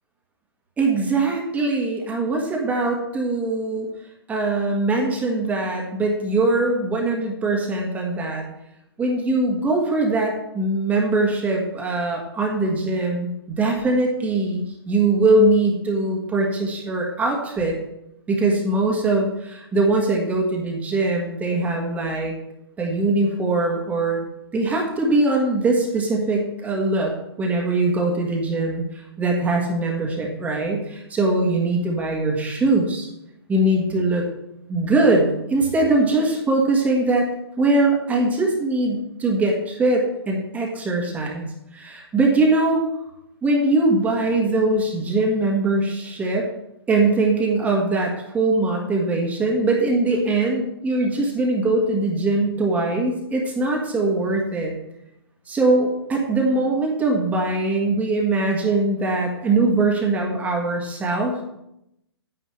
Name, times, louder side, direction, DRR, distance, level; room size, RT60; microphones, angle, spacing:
voice 1, 0.8-3.9 4.3-8.4 9.0-17.8 18.3-22.3 22.8-24.2 24.5-27.1 27.4-33.1 33.5-34.2 34.7-37.3 37.6-41.4 41.7-42.8 43.4-46.5 46.9-54.7 55.5-61.4, right 2 dB, 10° right, 0 dB, 1.5 m, -21 dB
10.0 x 9.4 x 3.3 m, 0.83 s
hypercardioid pair, 140°, 14 cm